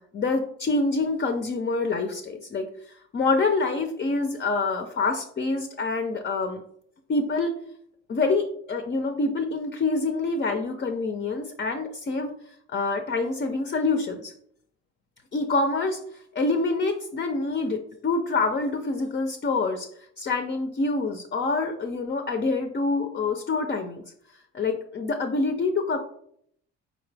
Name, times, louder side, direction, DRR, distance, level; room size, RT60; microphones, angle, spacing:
voice 1, 0.0-6.6 7.1-7.5 8.1-12.4 12.7-14.3 15.3-19.9 20.2-24.0 24.5-26.0, left 3 dB, 35° left, 6 dB, 0.5 m, -26 dB
4.0 x 3.9 x 3.3 m, 0.68 s
cardioid pair, 90°, 30 cm